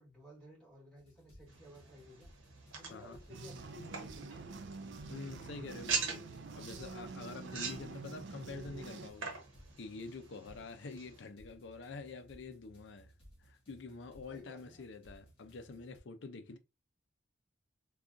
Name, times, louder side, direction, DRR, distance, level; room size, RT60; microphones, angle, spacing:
voice 1, 0.0-2.3 2.7-4.4 14.3-14.8, left 1 dB, 5° left, 2.1 m, -56 dB
sound 1, 1.0-16.0, right 1 dB, 25° left, 1.3 m, -61 dB
sound 2, 1.5-11.3, right 5 dB, 75° right, 1.0 m, -44 dB
sound 3, 3.3-9.1, right 4 dB, 60° right, 0.4 m, -47 dB
voice 2, 5.1-6.3 6.6-9.3 9.8-13.1 13.4-16.6, left 3 dB, 60° left, 0.5 m, -47 dB
3.9 x 2.3 x 2.5 m
head